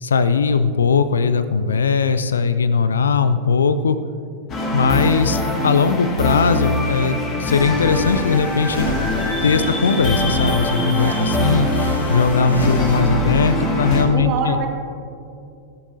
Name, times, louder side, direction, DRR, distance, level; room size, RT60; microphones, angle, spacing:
voice 1, 0.0-4.0 4.7-8.9 9.4-11.7 12.1-14.6, left 5 dB, 70° left, 13 dB, 0.5 m, -19 dB
sound 1, 4.5-14.0, left 1 dB, 30° left, 2.6 m, -22 dB
sound 2, 7.9-13.0, right 1 dB, 90° right, 1.9 m, -32 dB
voice 2, 9.1-9.8 11.0-11.2 14.1-14.7, right 5 dB, 40° right, 1 dB, 2.2 m, -27 dB
20.5 x 12.0 x 2.7 m, 2.5 s
figure-of-eight pair, 90°, 0 cm